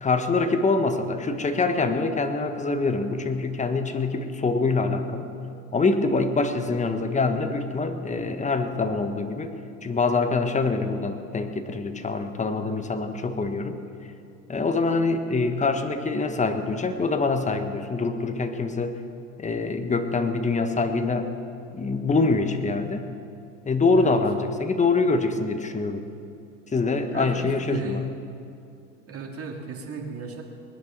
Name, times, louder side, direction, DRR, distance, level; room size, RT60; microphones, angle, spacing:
voice 1, 0.0-5.3 5.7-9.5 9.8-13.8 14.5-19.0 19.4-21.3 21.7-23.1 23.6-26.0 26.7-28.0, left 3 dB, 15° left, 7 dB, 1.5 m, -25 dB
voice 2, 27.1-28.1 29.0-30.4, right 5 dB, 35° right, 0 dB, 3.2 m, -35 dB
20.5 x 11.0 x 6.2 m, 2.6 s
hypercardioid pair, 80°, 40 cm